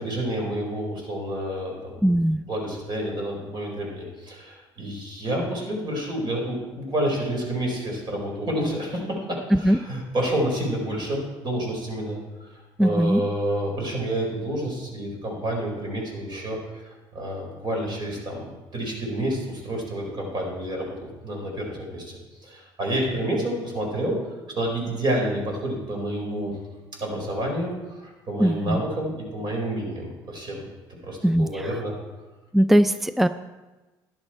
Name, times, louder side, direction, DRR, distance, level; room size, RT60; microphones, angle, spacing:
voice 1, 0.0-2.0 2.5-24.2 24.6-26.5 27.0-30.6 30.9-31.9, right 1 dB, 50° right, 0 dB, 4.8 m, -29 dB
voice 2, 2.0-2.4 9.5-9.8 12.8-13.2 28.4-28.8 31.2-31.7 32.5-33.3, equal, ahead, 12 dB, 0.4 m, -20 dB
11.5 x 11.0 x 4.4 m, 1.1 s
supercardioid pair, 80°, 10 cm